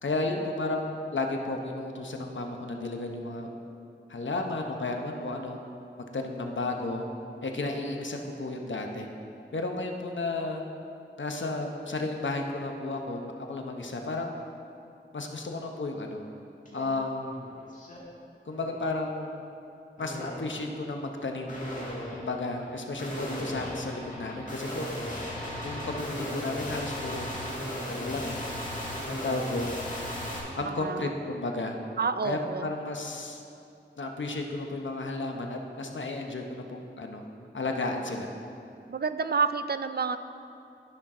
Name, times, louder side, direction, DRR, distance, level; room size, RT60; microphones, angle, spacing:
voice 1, 0.0-3.5 4.1-5.6 6.1-7.1 7.4-9.1 9.5-10.6 11.2-14.3 15.1-16.2 16.7-17.3 18.5-19.4 20.0-21.6 22.1-24.9 25.6-27.3 27.9-28.4 29.1-29.7 30.6-31.8 32.2-33.4 34.0-37.2 37.5-38.3, left 2 dB, 75° left, 3 dB, 0.9 m, -33 dB
sound 1, 16.7-16.8 17.2-18.0 18.5-18.9 20.0-20.6 21.5-30.4, left 1 dB, 40° left, 1.9 m, -36 dB
voice 2, 30.6-31.1 32.0-32.7 38.9-40.2, right 5 dB, 55° right, 11 dB, 0.4 m, -29 dB
13.0 x 5.8 x 3.7 m, 2.6 s
wide cardioid pair, 50°, 19 cm